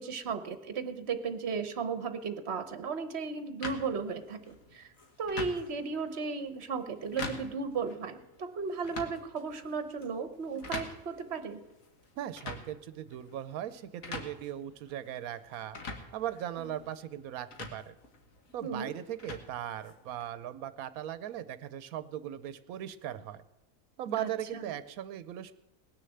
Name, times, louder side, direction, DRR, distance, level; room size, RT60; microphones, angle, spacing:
voice 1, 0.0-4.9 5.2-11.6 18.6-18.9 24.2-24.7, right 5 dB, 50° right, 10 dB, 1.2 m, -35 dB
sound 1, 3.6-20.3, left 3 dB, 70° left, 1.9 m, -45 dB
voice 2, 12.2-15.8 16.1-18.0 18.5-23.4 24.0-25.5, right 11 dB, 85° right, 14 dB, 1.1 m, -38 dB
19.0 x 6.6 x 7.7 m, 1.0 s
omnidirectional pair, 1.5 m